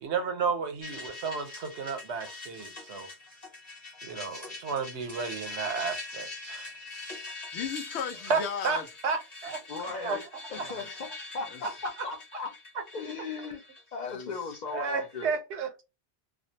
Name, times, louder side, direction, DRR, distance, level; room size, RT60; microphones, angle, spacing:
voice 1, 0.0-3.1 4.0-6.7 8.3-10.2 10.6-10.7 11.6-11.7 12.7-12.8 14.7-15.8, right 5 dB, 80° right, 1.0 m, -32 dB
sound 1, 0.8-15.2, left 3 dB, 40° left, 1.0 m, -43 dB
voice 2, 7.5-8.9 10.6-11.0 11.5-11.6 14.0-14.4, left 7 dB, 80° left, 0.9 m, -36 dB
voice 3, 9.7-10.2 10.5-12.5 12.9-13.6 13.9-15.4, left 4 dB, 55° left, 0.5 m, -37 dB
2.5 x 2.0 x 2.7 m
omnidirectional pair, 1.1 m